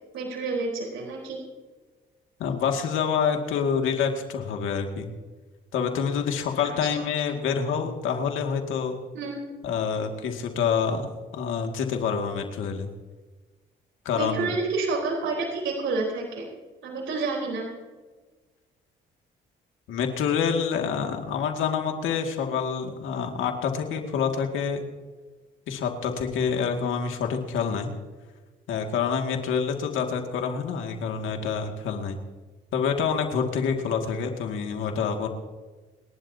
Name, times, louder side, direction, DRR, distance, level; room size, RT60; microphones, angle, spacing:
voice 1, 0.1-1.4 6.8-6.9 9.1-9.5 14.1-16.5 16.8-17.7, right 3 dB, 75° right, -3 dB, 4.2 m, -29 dB
voice 2, 2.4-5.1 5.7-9.0 9.6-11.1 11.3-12.9 14.1-14.5 19.9-24.8 25.7-27.9 28.7-32.2 32.7-35.3, left 6 dB, 85° left, 3 dB, 2.2 m, -27 dB
29.5 x 11.5 x 2.8 m, 1.3 s
cardioid pair, 90°, 20 cm